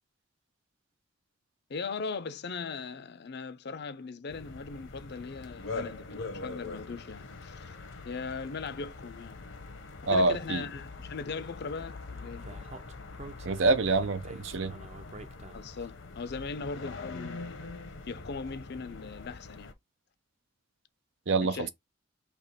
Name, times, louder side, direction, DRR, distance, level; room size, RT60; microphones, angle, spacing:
voice 1, 1.7-7.8 8.0-9.5 10.0-12.4 15.5-17.6 18.1-19.7 21.4-21.7, left 4 dB, 60° left, 0.5 m, -39 dB
sound 1, 4.3-19.7, left 3 dB, 75° left, 0.9 m, -43 dB
voice 2, 10.1-10.6 13.4-14.7 21.3-21.7, right 3 dB, 75° right, 0.6 m, -26 dB
Speech, 12.4-15.8, right 2 dB, 35° right, 0.6 m, -47 dB
3.3 x 2.9 x 4.2 m
head